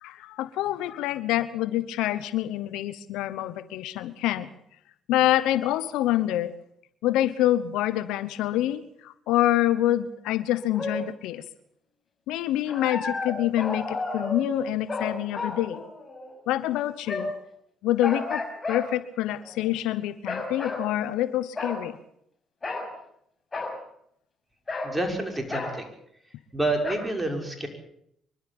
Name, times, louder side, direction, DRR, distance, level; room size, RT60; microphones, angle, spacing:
voice 1, 0.0-4.5 5.1-6.5 7.0-11.4 12.3-15.8 16.5-17.3 17.8-22.0, left 13 dB, 80° left, 14 dB, 1.0 m, -26 dB
sound 1, 10.6-11.0 12.7-16.3 17.1-17.4 18.0-18.9 19.4-19.7 20.3-20.9 21.6-21.8 22.6-22.9 23.5-23.8 24.7-25.0 25.5-25.8 26.8-27.0, left 3 dB, 30° left, 5.9 m, -32 dB
voice 2, 24.8-25.9 26.5-27.7, right 2 dB, 15° right, 3 dB, 5.9 m, -28 dB
24.5 x 12.5 x 8.7 m, 0.72 s
hypercardioid pair, 55°, 0 cm